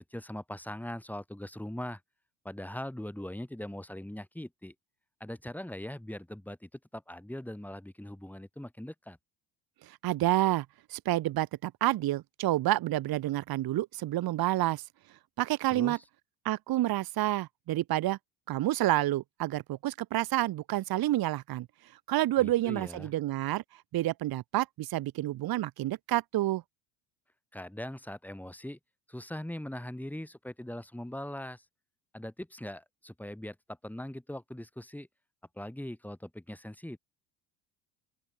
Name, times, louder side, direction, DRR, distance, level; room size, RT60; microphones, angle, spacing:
voice 1, 0.0-2.0 2.4-4.7 5.2-9.2 15.7-16.0 22.4-23.1 27.5-28.8 29.1-31.6 32.1-35.1 35.6-37.0, left 1 dB, 5° left, 8.0 m, -41 dB
voice 2, 9.8-14.8 15.4-16.0 16.4-18.2 18.5-21.7 22.1-23.6 23.9-26.6, right 15 dB, 50° right, 1.6 m, -29 dB
open air
hypercardioid pair, 85°, 48 cm